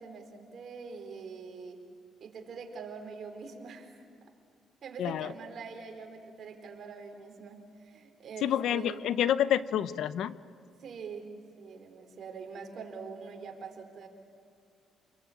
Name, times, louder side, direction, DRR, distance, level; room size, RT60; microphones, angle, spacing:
voice 1, 0.0-1.8 2.2-4.0 4.8-9.0 10.8-14.1, right 5 dB, 60° right, 4 dB, 4.3 m, -44 dB
voice 2, 8.4-10.4, left 10 dB, 80° left, 15 dB, 0.8 m, -28 dB
29.0 x 21.5 x 8.7 m, 2.4 s
cardioid pair, 90°, 0 cm